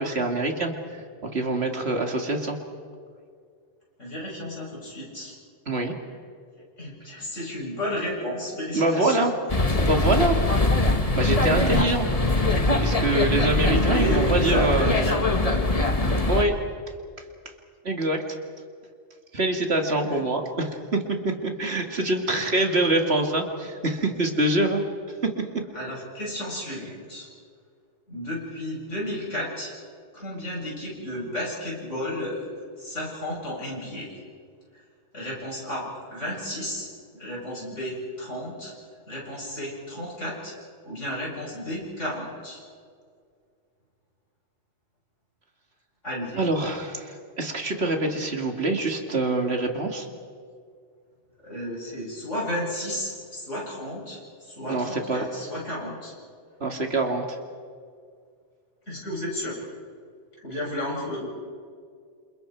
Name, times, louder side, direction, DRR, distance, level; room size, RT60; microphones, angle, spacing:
voice 1, 0.0-2.6 5.7-5.9 8.7-9.3 9.8-10.4 11.1-12.1 12.8-14.9 16.3-16.5 17.8-18.2 19.3-21.0 21.2-24.8 25.2-25.6 46.4-50.1 54.7-55.2 56.6-57.4, right 2 dB, 60° right, 3 dB, 2.5 m, -25 dB
voice 2, 4.0-5.4 6.8-9.3 13.3-15.8 16.2-16.3 20.0-20.2 21.6-21.8 25.7-27.3 28.1-29.7 30.1-32.5 32.8-34.2 35.1-38.7 39.1-40.6 40.8-42.6 46.0-46.4 51.4-56.1 58.9-59.6 60.4-61.3, left 1 dB, 90° left, -4 dB, 8.4 m, -32 dB
sound 1, 9.5-16.4, left 2 dB, 30° left, 1.7 m, -22 dB
28.5 x 27.5 x 4.6 m, 2.1 s
omnidirectional pair, 1.2 m